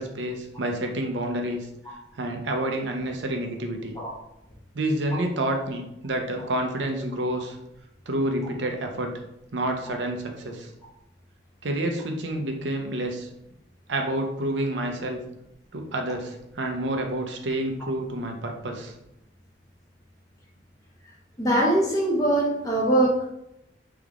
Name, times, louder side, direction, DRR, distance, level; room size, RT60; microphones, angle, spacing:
voice 1, 0.0-4.0 4.7-7.6 8.1-9.1 9.5-10.7 11.6-13.3 13.9-15.2 15.7-18.9, right 1 dB, 80° right, 3 dB, 0.7 m, -29 dB
voice 2, 21.4-23.3, right 1 dB, 20° left, -4 dB, 1.0 m, -22 dB
3.5 x 3.4 x 3.6 m, 0.85 s
head